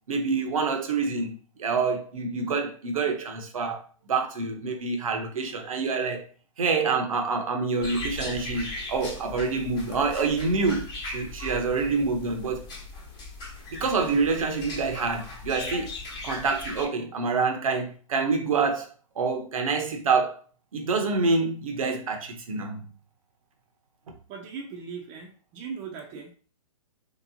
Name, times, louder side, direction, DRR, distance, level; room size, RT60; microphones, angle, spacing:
voice 1, 0.1-6.3 6.6-12.7 13.7-15.9 16.2-18.9 19.2-20.4 20.7-22.9, right 4 dB, 75° right, 0.9 m, -27 dB
sound 1, 7.8-16.9, left 2 dB, 25° left, 1.1 m, -38 dB
voice 2, 24.3-26.3, right 5 dB, 30° right, 0.7 m, -39 dB
3.3 x 3.0 x 2.7 m
hypercardioid pair, 130°, 18 cm